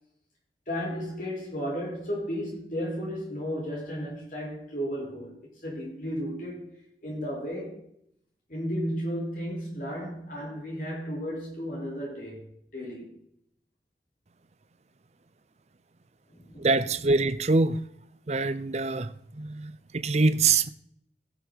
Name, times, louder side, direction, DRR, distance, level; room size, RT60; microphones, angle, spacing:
voice 1, 0.7-5.3 5.6-6.7 7.0-7.8 8.5-12.5 12.7-13.1 16.3-16.7, equal, 50° left, 5.0 m, -34 dB
voice 2, 16.6-17.8 18.3-20.7, right 3 dB, 40° right, 0.6 m, -25 dB
15.5 x 7.1 x 4.1 m
head